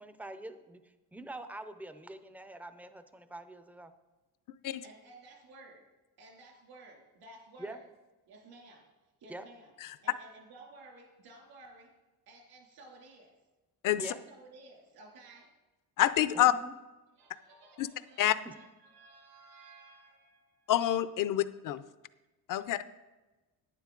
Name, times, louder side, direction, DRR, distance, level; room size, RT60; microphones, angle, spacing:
voice 1, 0.0-3.9 7.6-7.8 9.3-9.4 14.0-14.2 16.3-16.7 18.5-18.6, right 1 dB, 5° right, 10 dB, 0.4 m, -45 dB
voice 2, 4.8-5.9 6.2-7.9 8.3-8.9 9.2-9.7 10.0-11.9 12.3-13.3 14.0-15.5 17.2-20.7, right 2 dB, 75° right, 0 dB, 2.8 m, -55 dB
voice 3, 16.0-16.5 17.8-17.9 18.2-18.4 20.7-21.8 22.5-22.8, left 13 dB, 60° left, 14 dB, 0.5 m, -27 dB
10.5 x 9.5 x 3.8 m, 1.1 s
cardioid pair, 145°, 37 cm